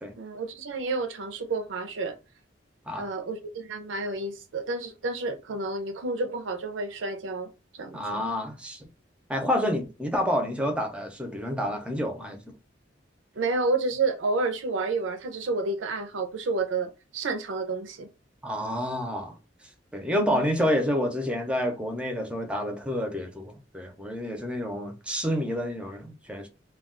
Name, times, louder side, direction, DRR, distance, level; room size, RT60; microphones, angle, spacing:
voice 1, 0.2-2.2 3.0-8.2 13.4-18.1 20.3-20.5, right 3 dB, 85° right, 0.5 m, -30 dB
voice 2, 7.9-8.9 9.3-12.4 18.4-19.4 19.9-26.5, equal, 5° right, 0.5 m, -29 dB
2.3 x 2.3 x 3.6 m
head